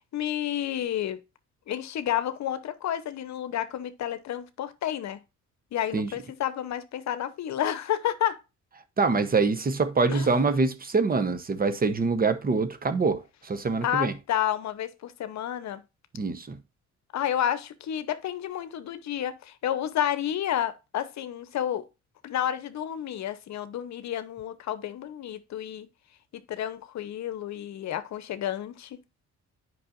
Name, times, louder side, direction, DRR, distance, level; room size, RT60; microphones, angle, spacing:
voice 1, 0.1-1.2 1.7-5.2 5.7-8.4 10.1-10.3 13.8-15.8 17.1-21.8 22.2-25.9 26.5-29.0, left 11 dB, 65° left, 0.8 m, -30 dB
voice 2, 9.0-14.1 16.2-16.6, right 4 dB, 30° right, 0.8 m, -25 dB
8.5 x 5.5 x 2.5 m
cardioid pair, 90°, 30 cm